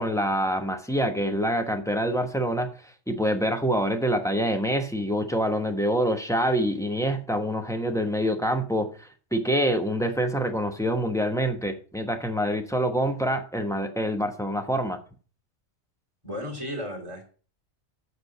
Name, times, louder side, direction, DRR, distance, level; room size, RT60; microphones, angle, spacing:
voice 1, 0.0-15.0, equal, 5° left, 5 dB, 1.0 m, -26 dB
voice 2, 16.2-17.2, left 1 dB, 20° right, 1 dB, 3.0 m, -34 dB
8.3 x 6.6 x 6.0 m, 0.39 s
omnidirectional pair, 1.3 m